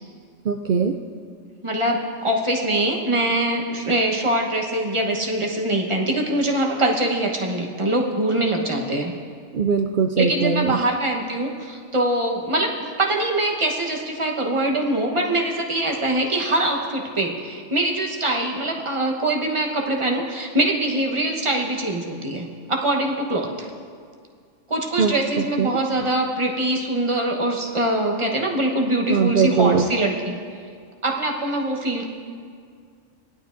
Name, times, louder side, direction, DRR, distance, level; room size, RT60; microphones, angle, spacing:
voice 1, 0.4-0.9 9.5-10.8 25.0-25.1 25.6-25.8 29.1-29.9, right 6 dB, 65° right, 5 dB, 0.5 m, -20 dB
voice 2, 1.6-9.1 10.2-23.7 24.7-30.6 31.0-32.0, right 1 dB, 25° right, 0 dB, 1.1 m, -23 dB
19.0 x 11.5 x 2.6 m, 2.1 s
omnidirectional pair, 1.3 m